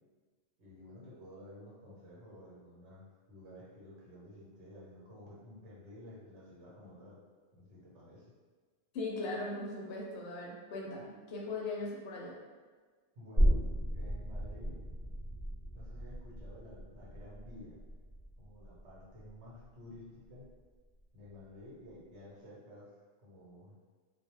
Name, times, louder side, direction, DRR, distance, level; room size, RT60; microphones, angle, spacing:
voice 1, 0.6-7.2 7.5-8.3 13.1-13.6 13.9-14.8 15.7-17.8 18.4-20.5 21.1-22.9 23.2-23.8, left 1 dB, 65° right, -7 dB, 1.0 m, -52 dB
voice 2, 8.9-12.4, left 2 dB, 65° left, -3 dB, 0.7 m, -39 dB
sound 1, 13.4-20.6 21.0-21.1, equal, 25° right, 0.9 m, -35 dB
2.3 x 2.1 x 3.0 m, 1.4 s
omnidirectional pair, 1.3 m